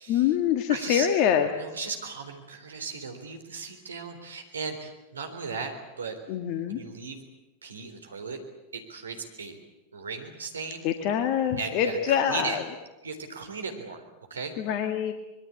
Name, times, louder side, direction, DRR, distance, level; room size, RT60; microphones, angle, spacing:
voice 1, 0.1-1.5 6.3-6.8 10.8-12.6 14.6-15.1, left 9 dB, 40° left, 7 dB, 1.7 m, -25 dB
voice 2, 0.7-1.1 1.5-6.2 6.7-7.2 7.6-8.4 8.7-9.6 9.9-10.9 11.6-12.6 13.0-14.0 14.3-14.6, right 4 dB, 70° right, 5 dB, 3.8 m, -36 dB
25.0 x 21.5 x 8.5 m, 1.0 s
figure-of-eight pair, 90°, 0 cm